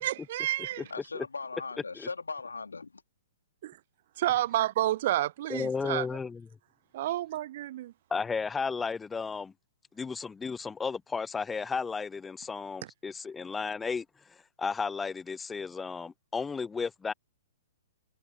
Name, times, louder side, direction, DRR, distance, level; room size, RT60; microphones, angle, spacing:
voice 1, 0.0-0.8 3.6-3.8 4.2-6.1 6.9-7.9, right 14 dB, 45° right, 0.8 m, -30 dB
voice 2, 0.8-3.0, left 4 dB, 75° left, 3.3 m, -39 dB
voice 3, 5.5-6.4 8.1-9.5 10.0-14.0 14.6-17.1, left 5 dB, 10° left, 0.7 m, -33 dB
figure-of-eight pair, 115°, 0 cm